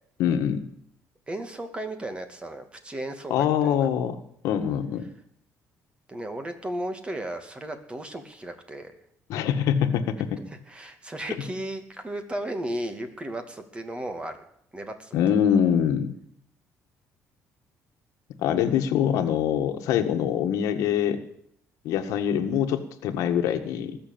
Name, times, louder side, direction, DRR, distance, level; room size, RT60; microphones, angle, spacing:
voice 1, 0.2-0.6 3.3-5.1 9.3-10.3 15.1-16.2 18.4-21.2 21.8-24.0, left 9 dB, 85° left, 7 dB, 1.7 m, -24 dB
voice 2, 1.3-3.9 6.1-8.9 10.5-14.3 14.7-15.2, right 1 dB, 20° right, 7 dB, 2.4 m, -35 dB
20.0 x 6.9 x 8.7 m, 0.70 s
cardioid pair, 110°, 5 cm